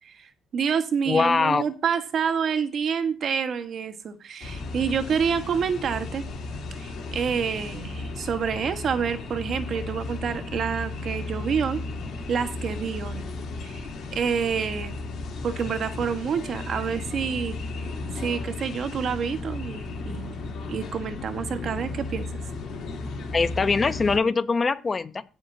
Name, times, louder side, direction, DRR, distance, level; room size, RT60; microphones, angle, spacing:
voice 1, 0.0-6.3 6.7-11.8 12.3-13.2 13.6-15.0 15.4-17.9 18.2-20.3 20.7-22.3, right 6 dB, 55° right, 1.4 m, -28 dB
voice 2, 1.1-1.6 23.3-25.2, left 4 dB, 30° left, 0.8 m, -22 dB
sound 1, 4.4-24.2, left 3 dB, 70° left, 3.1 m, -34 dB
17.0 x 7.0 x 2.8 m
cardioid pair, 105°, 0 cm